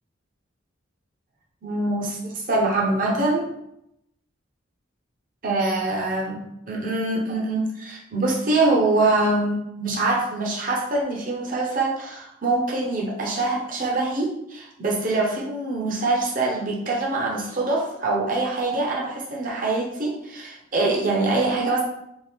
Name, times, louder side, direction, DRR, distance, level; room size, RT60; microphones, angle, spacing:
voice 1, 1.6-3.5 5.4-6.4 6.7-21.8, right 2 dB, 40° right, -2 dB, 0.7 m, -24 dB
4.3 x 2.4 x 3.4 m, 0.80 s
head